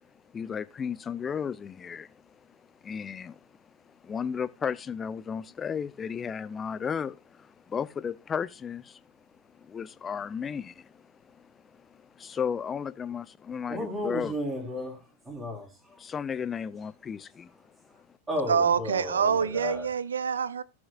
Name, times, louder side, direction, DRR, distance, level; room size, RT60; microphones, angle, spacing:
voice 1, 0.0-9.0 9.4-14.3 16.0-18.1, left 7 dB, 20° left, 0.5 m, -35 dB
voice 2, 13.7-16.0 17.9-18.0 18.3-19.9, left 1 dB, 10° right, 3.7 m, -34 dB
voice 3, 18.5-20.6, right 6 dB, 70° right, 0.4 m, -26 dB
16.5 x 6.2 x 2.4 m
figure-of-eight pair, 90°, 0 cm